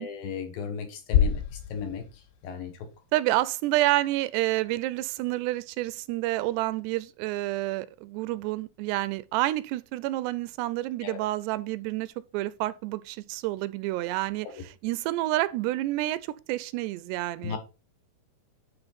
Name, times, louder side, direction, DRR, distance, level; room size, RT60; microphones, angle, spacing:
voice 1, 0.0-2.1 2.4-2.9 11.0-11.2 14.4-14.6 17.4-17.6, left 6 dB, 65° left, 2.7 m, -36 dB
sound 1, 1.1-3.2, left 9 dB, 80° left, 2.7 m, -27 dB
voice 2, 3.1-14.5 14.8-17.6, right 17 dB, 85° right, 2.7 m, -29 dB
9.9 x 4.1 x 5.6 m
omnidirectional pair, 4.8 m